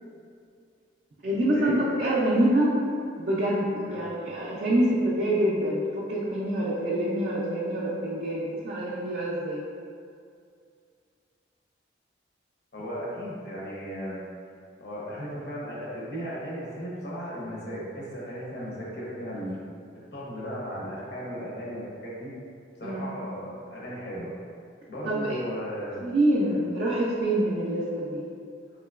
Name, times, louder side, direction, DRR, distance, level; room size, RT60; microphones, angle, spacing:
voice 1, 1.2-2.7 3.2-9.6 22.8-23.0 25.0-25.4 26.0-28.2, right 1 dB, 45° right, -6 dB, 0.4 m, -26 dB
voice 2, 12.7-14.2 14.8-19.6 20.1-22.3 22.8-24.3 24.9-26.0 26.4-26.6, equal, 55° left, -6 dB, 0.7 m, -36 dB
3.6 x 2.8 x 2.3 m, 2.3 s
head